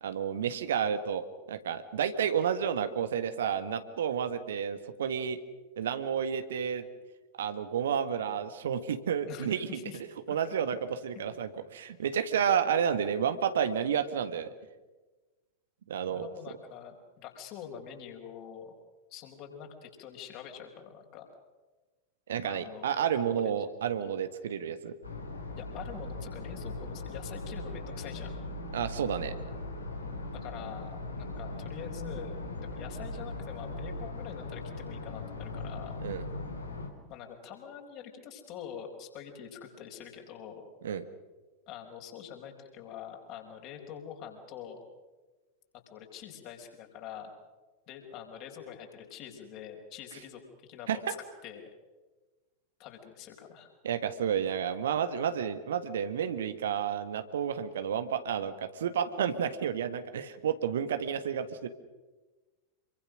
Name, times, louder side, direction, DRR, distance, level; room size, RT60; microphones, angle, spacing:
voice 1, 0.0-5.4 5.8-6.9 7.3-9.7 10.3-10.8 11.0-14.5 15.9-16.3 22.3-24.9 28.7-29.3 36.0-36.2 40.8-41.0 50.9-51.0 53.8-61.7, right 8 dB, 60° right, 10 dB, 1.6 m, -31 dB
voice 2, 9.3-10.0 10.3-10.4 16.1-18.7 19.1-21.3 22.4-22.9 23.3-23.5 25.6-28.3 30.3-32.3 32.6-36.0 37.1-40.6 41.7-44.8 45.9-47.3 47.9-51.2 51.4-51.6 52.8-53.7, left 8 dB, 40° left, 2 dB, 5.7 m, -45 dB
sound 1, 25.0-36.9, left 2 dB, 75° left, 3.6 m, -39 dB
27.0 x 24.0 x 6.4 m, 1.2 s
figure-of-eight pair, 90°, 0 cm